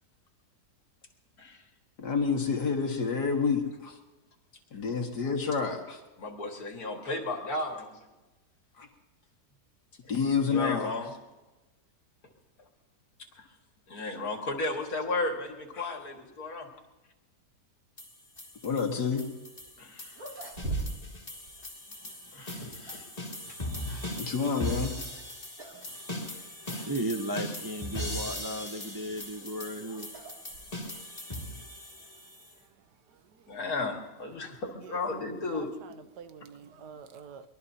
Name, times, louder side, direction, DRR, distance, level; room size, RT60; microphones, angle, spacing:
voice 1, 2.0-4.0 4.7-6.0 8.8-8.9 10.1-11.0 15.8-15.9 18.6-19.2 24.2-24.9, left 5 dB, 85° left, 2 dB, 2.4 m, -28 dB
voice 2, 6.2-7.9 10.3-11.1 13.4-13.5 13.9-16.7 19.8-20.2 22.3-23.1 23.8-24.1 26.7-26.9 33.5-35.7, left 2 dB, 60° left, 2 dB, 2.5 m, -34 dB
sound 1, 18.0-32.5, left 1 dB, 25° left, 2.6 m, -39 dB
sound 2, 19.6-19.7 20.1-21.2 21.5-21.6 22.5-23.2 25.0-25.2 25.6-25.9 26.2-26.3 27.1-27.2 28.9-31.1, right 2 dB, 60° right, 3.1 m, -40 dB
voice 3, 22.5-23.0 23.4-23.5 25.7-26.0 26.7-30.1, right 1 dB, 25° right, 4 dB, 0.5 m, -36 dB
voice 4, 33.1-33.5 34.7-37.5, right 7 dB, 85° right, 10 dB, 1.4 m, -49 dB
23.5 x 21.5 x 2.8 m, 1.1 s
omnidirectional pair, 1.7 m